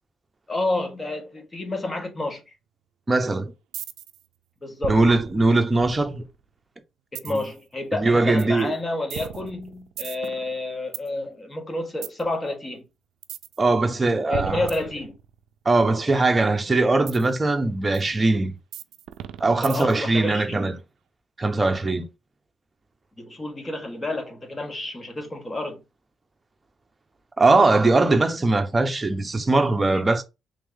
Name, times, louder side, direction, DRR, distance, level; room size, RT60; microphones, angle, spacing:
voice 1, 0.5-2.4 4.6-5.0 7.1-12.8 14.3-15.1 19.6-20.7 23.2-25.8, left 2 dB, 20° left, 1.4 m, -29 dB
voice 2, 3.1-3.5 4.9-6.2 7.3-7.4 7.9-8.7 13.6-14.7 15.6-18.6 19.4-20.8 21.4-22.1 27.4-30.2, right 2 dB, 20° right, 0.8 m, -21 dB
sound 1, 3.7-4.2 4.8-6.4 7.1-7.6 8.4-8.6 9.1-11.1 12.0-12.2 13.2-13.6 14.3-15.5 17.1-17.3 17.9-18.0 18.7-20.1, right 10 dB, 85° right, 0.3 m, -36 dB
3.5 x 3.0 x 3.7 m
cardioid pair, 90°, 0 cm